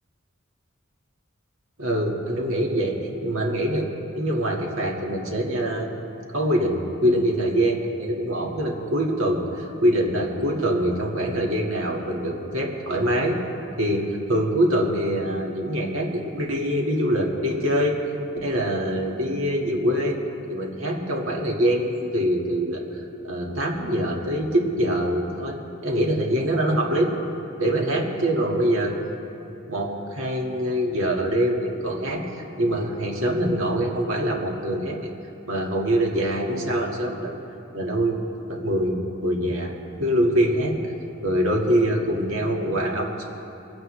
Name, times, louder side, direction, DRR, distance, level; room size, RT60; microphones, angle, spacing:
voice 1, 1.8-3.9 4.1-5.9 6.3-13.4 13.8-18.0 18.4-20.2 20.5-22.8 23.2-25.6 25.8-27.1 27.6-29.0 29.7-35.1 35.5-37.3 37.7-39.7 40.0-40.8 41.2-43.2, equal, 70° right, 0 dB, 2.0 m, -24 dB
22.0 x 16.0 x 3.3 m, 2.8 s
head